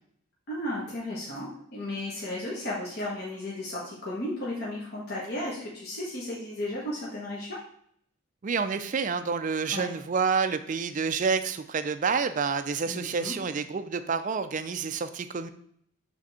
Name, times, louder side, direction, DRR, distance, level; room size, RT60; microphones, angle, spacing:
voice 1, 0.5-7.6 9.7-9.9 12.9-13.3, left 1 dB, 45° left, -6 dB, 1.4 m, -34 dB
voice 2, 8.4-15.5, right 5 dB, 35° right, 11 dB, 0.4 m, -28 dB
7.5 x 3.6 x 4.2 m, 0.67 s
head